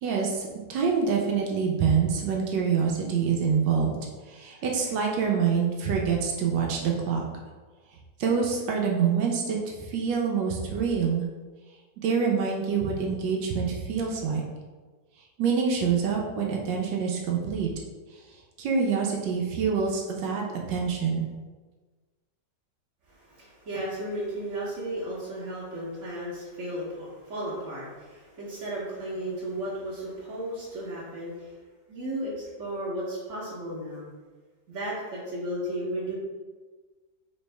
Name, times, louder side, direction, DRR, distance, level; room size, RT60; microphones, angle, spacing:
voice 1, 0.0-4.0 4.3-7.2 8.2-9.6 9.9-11.2 12.0-14.4 15.4-17.7 18.6-21.2, right 6 dB, 80° right, -1 dB, 1.3 m, -26 dB
voice 2, 23.1-31.5 31.9-34.1 34.7-36.1, right 1 dB, 50° right, -9 dB, 1.1 m, -34 dB
3.5 x 3.1 x 3.2 m, 1.3 s
omnidirectional pair, 1.9 m